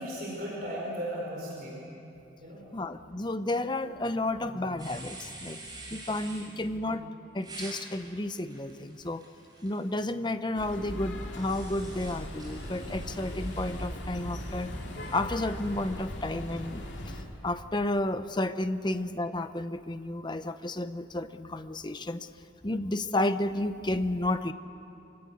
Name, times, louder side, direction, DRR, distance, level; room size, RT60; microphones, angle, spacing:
voice 1, 0.0-1.7 2.4-2.6 6.5-7.0, equal, 50° right, -3 dB, 4.8 m, -37 dB
voice 2, 2.7-7.1 7.3-9.2 9.6-14.7 15.1-17.1 17.4-22.3 22.6-24.5, left 1 dB, 25° left, 10 dB, 0.7 m, -32 dB
sound 1, 4.8-6.5 7.4-9.9 11.4-13.9, right 2 dB, 20° right, 5.2 m, -47 dB
sound 2, 10.5-17.2, left 1 dB, 70° left, 2.9 m, -38 dB
25.5 x 16.5 x 9.5 m, 2.9 s
head